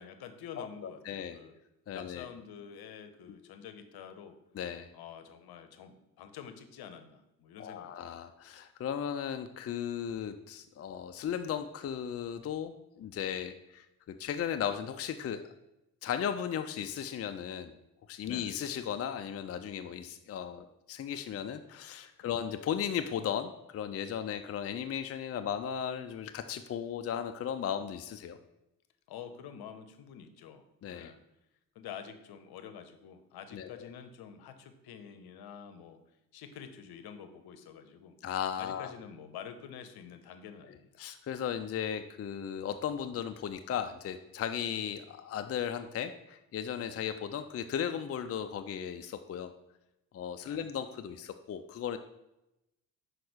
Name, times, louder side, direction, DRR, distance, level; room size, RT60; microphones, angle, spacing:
voice 1, 0.0-1.6 1.9-4.4 4.9-8.2 18.2-18.6 22.2-22.4 29.1-31.2 31.7-36.0 36.3-38.2 38.6-40.9 46.9-47.0 50.4-50.7, left 8 dB, 65° left, 10 dB, 0.9 m, -48 dB
voice 2, 0.6-1.4 1.9-2.2 4.5-4.9 7.6-13.8 14.2-15.4 16.0-17.7 18.1-28.4 30.8-31.1 33.5-33.7 38.2-38.9 41.0-49.5 50.1-52.0, left 8 dB, 35° left, 8 dB, 0.5 m, -36 dB
5.9 x 4.8 x 5.0 m, 0.91 s
hypercardioid pair, 50°, 41 cm